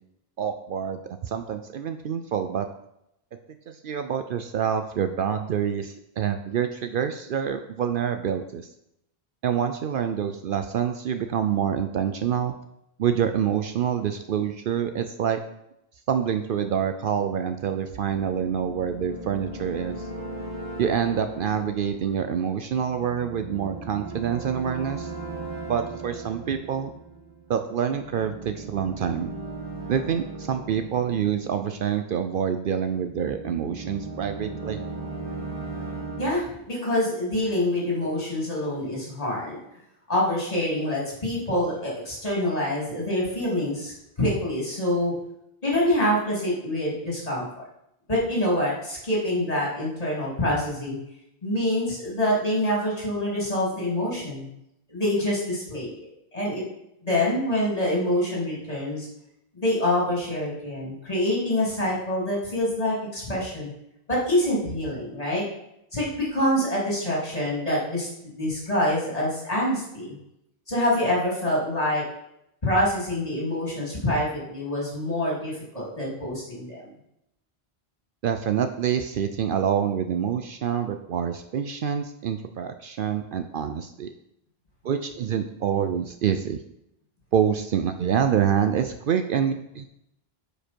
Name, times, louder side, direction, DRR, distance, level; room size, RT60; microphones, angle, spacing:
voice 1, 0.4-2.7 3.7-8.7 9.4-12.5 13.0-15.4 16.1-20.1 20.8-25.1 25.7-26.9 27.5-29.3 29.9-34.8 78.2-84.1 84.8-86.6 87.3-89.9, right 8 dB, 65° right, 8 dB, 0.7 m, -26 dB
sound 1, 17.9-32.2 32.8-36.3, right 3 dB, 40° right, 2.3 m, -38 dB
voice 2, 36.2-39.6 40.1-45.1 45.6-47.6 48.1-51.0 51.4-54.5 54.9-56.6 57.0-59.1 59.5-63.7 64.1-65.4 65.9-68.1 68.3-70.2 70.7-72.0 72.6-76.9, left 1 dB, 35° left, -5 dB, 3.0 m, -26 dB
9.6 x 5.1 x 4.4 m, 0.80 s
omnidirectional pair, 1.1 m